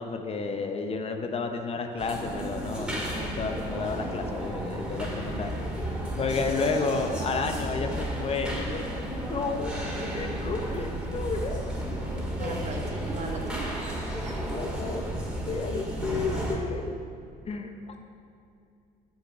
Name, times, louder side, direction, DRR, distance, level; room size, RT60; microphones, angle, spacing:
voice 1, 0.0-5.5 6.2-9.7 10.1-11.6 12.4-12.7 14.4-15.0 15.5-16.9 17.5-18.0, left 4 dB, 35° left, 5 dB, 0.7 m, -31 dB
sound 1, 2.0-16.5, right 1 dB, 5° right, 1.9 m, -33 dB
voice 2, 12.4-13.7 14.1-14.5, right 2 dB, 40° right, 1 dB, 1.4 m, -38 dB
8.7 x 6.2 x 5.7 m, 2.5 s
cardioid pair, 110°, 17 cm